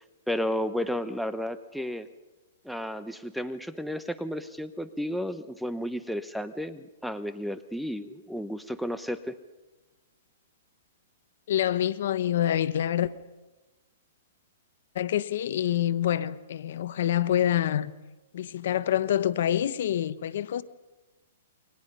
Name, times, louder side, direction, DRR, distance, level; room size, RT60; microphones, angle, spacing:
voice 1, 0.0-2.1 2.6-9.4, equal, ahead, 1.0 m, -33 dB
voice 2, 11.5-13.1 14.9-17.9 18.3-20.6, left 11 dB, 65° left, 1.2 m, -26 dB
29.0 x 24.0 x 5.5 m
hypercardioid pair, 145°, 0 cm